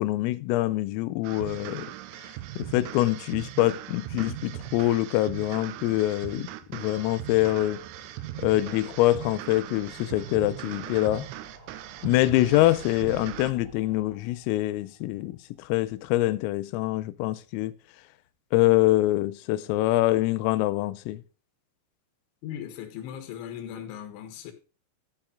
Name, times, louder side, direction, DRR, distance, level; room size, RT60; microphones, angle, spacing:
voice 1, 0.0-1.9 2.6-7.8 8.4-11.3 12.0-17.7 18.5-21.2, left 17 dB, 90° left, 3.4 m, -25 dB
sound 1, 1.2-13.5, right 14 dB, 85° right, 2.9 m, -39 dB
sound 2, 4.7-16.5 16.8-16.9 17.1-17.2 17.4-17.5, right 4 dB, 55° right, 4.5 m, -53 dB
voice 2, 22.4-24.5, left 10 dB, 70° left, 3.8 m, -38 dB
13.0 x 5.7 x 5.0 m
omnidirectional pair, 5.9 m